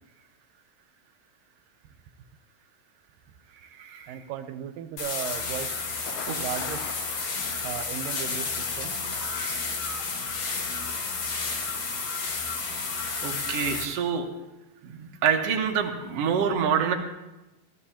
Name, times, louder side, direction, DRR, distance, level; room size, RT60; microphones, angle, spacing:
voice 1, 4.1-5.8 6.4-6.9 7.6-9.0, right 10 dB, 90° right, 10 dB, 2.4 m, -36 dB
sound 1, 5.0-13.8, left 4 dB, 60° left, 2.6 m, -31 dB
Thunder, 5.8-9.7, left 6 dB, 80° left, 2.6 m, -44 dB
voice 2, 9.3-9.7 13.2-14.3 14.8-16.9, right 7 dB, 60° right, 2 dB, 1.8 m, -27 dB
16.5 x 14.0 x 2.8 m, 1.0 s
omnidirectional pair, 3.8 m